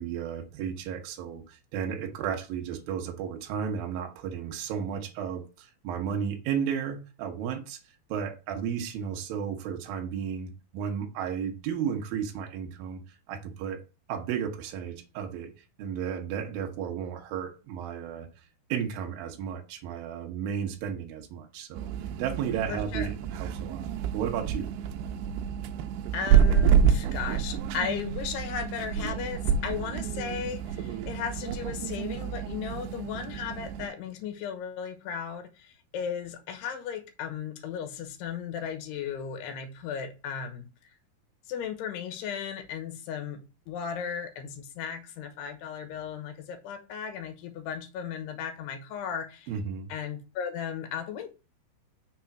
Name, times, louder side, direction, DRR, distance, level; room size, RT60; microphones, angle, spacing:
voice 1, 0.0-7.8 8.1-13.0 13.3-13.8 14.1-15.5 15.8-18.3 18.7-21.9 22.2-24.7 49.5-49.9, right 8 dB, 70° right, 2.7 m, -33 dB
sound 1, 21.7-33.9, right 8 dB, 85° right, 2.7 m, -28 dB
voice 2, 22.7-23.1 26.1-40.7 41.5-49.5 49.9-51.3, left 7 dB, 85° left, 3.2 m, -36 dB
6.7 x 3.8 x 5.9 m
omnidirectional pair, 4.7 m